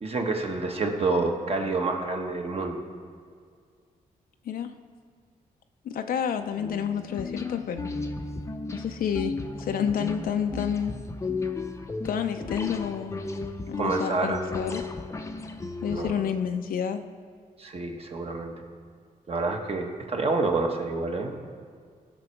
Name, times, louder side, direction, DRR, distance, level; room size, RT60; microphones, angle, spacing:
voice 1, 0.0-2.8 13.8-14.4 15.9-16.2 17.6-18.5 19.3-21.4, right 3 dB, 40° right, 3 dB, 1.2 m, -28 dB
voice 2, 5.8-7.9 8.7-10.9 12.0-13.2 13.7-14.8 15.8-17.0, left 8 dB, 70° left, 7 dB, 0.5 m, -29 dB
sound 1, 6.5-16.1, left 3 dB, 20° left, 0.6 m, -35 dB
16.0 x 6.1 x 4.6 m, 2.1 s
wide cardioid pair, 120°, 15 cm